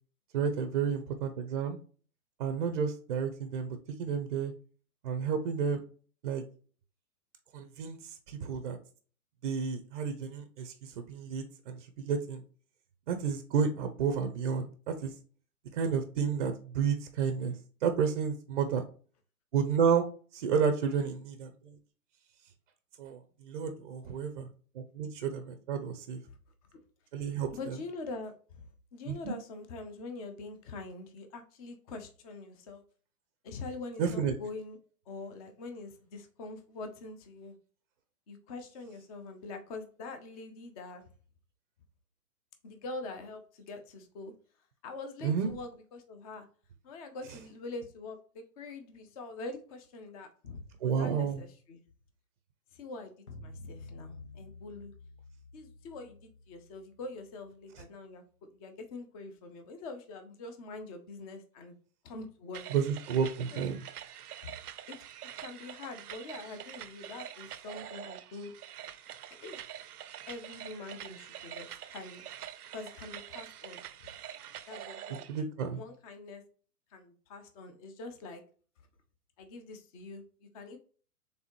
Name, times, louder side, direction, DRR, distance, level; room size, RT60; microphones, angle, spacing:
voice 1, 0.3-1.8 2.4-4.5 5.0-5.8 6.2-6.4 7.5-8.0 8.3-8.8 9.4-12.4 13.1-15.1 15.7-17.5 17.8-18.8 19.5-20.1 20.3-21.7 23.0-24.5 24.7-26.2 27.1-27.8 29.1-29.3 34.0-34.3 45.2-45.5 50.8-51.4 62.7-63.8 75.3-75.8, right 6 dB, 35° right, 8 dB, 0.5 m, -31 dB
voice 2, 27.5-28.6 28.9-32.8 33.4-34.8 35.1-37.5 38.3-41.0 42.6-44.3 44.8-46.5 46.8-51.8 52.7-53.1 53.4-54.9 55.5-61.8 62.0-62.7 63.5-63.6 64.4-64.5 64.9-65.0 65.4-68.5 69.4-69.6 70.3-72.3 72.7-73.8 74.1-74.2 74.7-76.4 76.9-78.4 79.4-80.8, left 3 dB, 25° left, 7 dB, 0.6 m, -44 dB
sound 1, 53.3-57.7, left 2 dB, 90° left, 1.5 m, -50 dB
sound 2, 62.5-75.4, right 10 dB, 90° right, 0.5 m, -45 dB
4.1 x 3.5 x 3.0 m, 0.41 s
hypercardioid pair, 140°, 44 cm